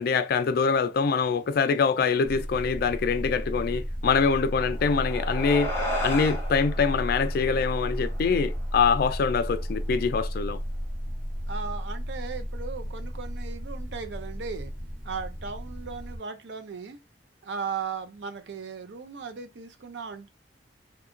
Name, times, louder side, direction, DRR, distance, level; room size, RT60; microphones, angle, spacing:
voice 1, 0.0-5.7 6.0-10.6, left 5 dB, 55° left, 0.3 m, -24 dB
sound 1, 2.2-16.2, equal, 50° right, 1.1 m, -33 dB
sound 2, 4.7-9.3, equal, 15° left, 0.9 m, -35 dB
voice 2, 11.5-14.7 15.0-17.0 17.4-20.3, right 5 dB, 80° right, 0.5 m, -37 dB
2.8 x 2.3 x 2.4 m
head